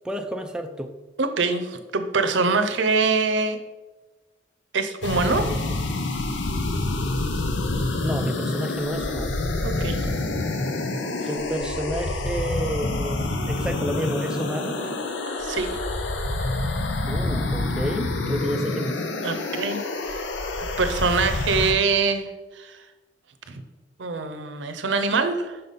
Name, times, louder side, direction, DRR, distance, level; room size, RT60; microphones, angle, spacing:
voice 1, 0.0-0.9 8.0-9.4 11.3-15.0 17.1-19.0, equal, 5° right, 4 dB, 0.3 m, -30 dB
voice 2, 1.2-3.6 4.7-5.6 9.6-10.0 15.4-15.8 19.2-20.2 20.8-22.3 22.5-22.8 23.5-23.6 24.0-25.6, right 4 dB, 90° right, 9 dB, 0.6 m, -24 dB
sound 1, 5.0-21.7, left 2 dB, 90° left, 0.7 m, -27 dB
5.6 x 4.1 x 5.2 m, 1.1 s
head